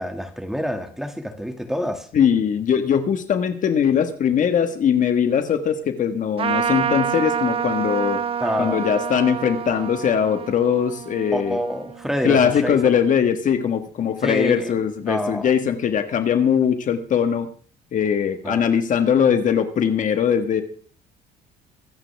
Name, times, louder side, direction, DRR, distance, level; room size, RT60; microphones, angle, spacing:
voice 1, 0.0-2.1 8.4-8.8 11.3-13.0 14.2-15.5 18.4-18.6, equal, ahead, 5 dB, 2.3 m, -27 dB
voice 2, 2.1-8.2 8.6-11.6 12.2-17.5 17.9-20.6, left 8 dB, 50° left, 8 dB, 1.6 m, -20 dB
Trumpet, 6.4-12.2, right 7 dB, 35° right, 0.6 m, -27 dB
24.5 x 9.0 x 3.5 m, 0.44 s
cardioid pair, 110°, 17 cm